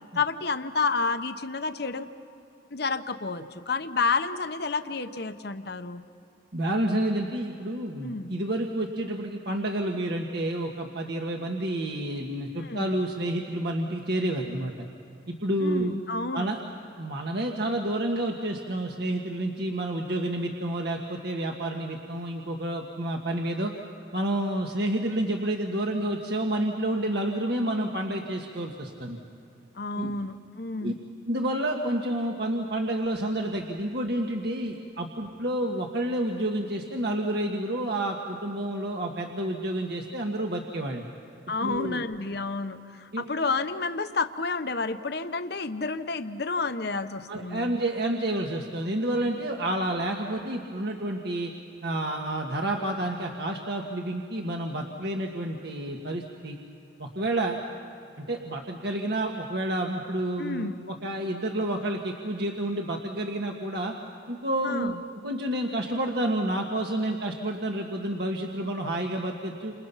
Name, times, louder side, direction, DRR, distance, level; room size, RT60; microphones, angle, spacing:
voice 1, 0.1-2.1 2.7-6.0 8.0-8.3 12.6-12.9 15.6-16.5 29.8-30.9 41.5-47.6 49.2-49.3 60.4-60.8 64.6-64.9, left 4 dB, 55° left, 9 dB, 1.0 m, -30 dB
voice 2, 6.5-14.7 15.3-15.9 16.3-16.6 17.0-23.7 24.1-29.2 30.0-30.1 30.8-30.9 31.3-41.1 41.6-42.0 43.1-43.2 47.3-51.5 51.8-56.6 57.0-57.6 58.2-63.9 64.3-65.0 65.2-69.7, right 1 dB, 55° right, 1 dB, 1.6 m, -29 dB
30.0 x 27.5 x 5.7 m, 2.7 s
head